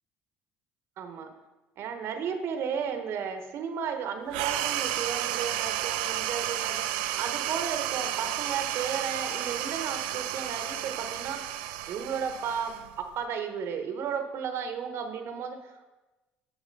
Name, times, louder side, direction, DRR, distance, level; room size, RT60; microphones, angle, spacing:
voice 1, 1.0-1.3 1.8-11.4 11.9-12.7 13.2-15.9, right 7 dB, 60° right, 6 dB, 1.0 m, -34 dB
sound 1, 4.3-13.2, right 13 dB, 90° right, 0.4 m, -32 dB
6.9 x 6.6 x 5.3 m, 1.1 s
supercardioid pair, 75°, 5 cm